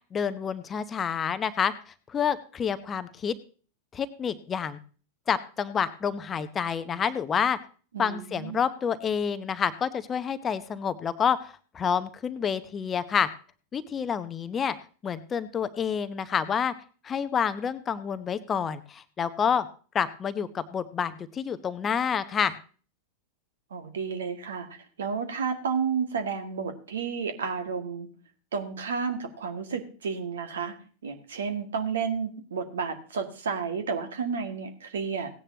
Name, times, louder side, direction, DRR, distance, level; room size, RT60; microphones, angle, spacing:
voice 1, 0.1-3.3 3.9-4.8 5.3-7.6 8.0-13.3 13.7-14.8 15.0-16.7 17.0-19.7 19.9-22.6, left 7 dB, 20° left, 13 dB, 0.8 m, -28 dB
voice 2, 7.9-8.6 23.7-24.7 25.0-28.1 28.5-30.7 31.0-35.3, right 6 dB, 65° right, 6 dB, 1.9 m, -31 dB
17.0 x 9.9 x 2.8 m, 0.39 s
figure-of-eight pair, 90°, 0 cm